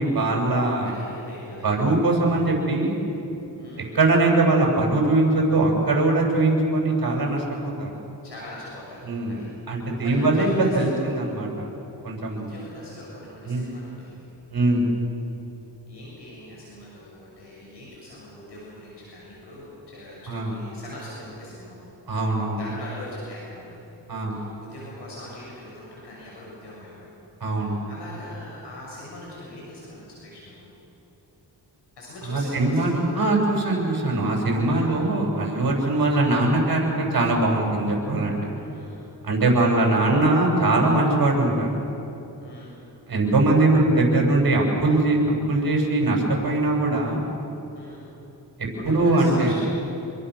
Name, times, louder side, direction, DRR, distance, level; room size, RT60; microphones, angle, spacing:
voice 1, 0.0-0.9 1.6-3.0 3.9-7.9 9.0-9.4 9.7-10.5 10.7-11.7 12.0-12.5 13.4-13.6 14.5-14.9 20.3-20.6 22.1-22.6 24.1-24.4 27.4-27.8 32.3-38.4 39.2-41.7 43.1-47.2 48.9-49.5, right 2 dB, 55° right, 0 dB, 7.1 m, -21 dB
voice 2, 0.8-1.7 3.6-4.0 8.2-9.5 9.8-11.2 12.3-14.3 14.6-14.8 15.9-21.9 22.2-23.8 24.3-27.1 27.5-30.6 32.0-33.0 34.7-35.0 38.5-39.1 39.4-39.8 42.4-42.7 47.7-48.0 48.8-49.7, left 1 dB, 70° left, -5 dB, 7.1 m, -41 dB
27.5 x 22.5 x 6.4 m, 3.0 s
cardioid pair, 85°, 42 cm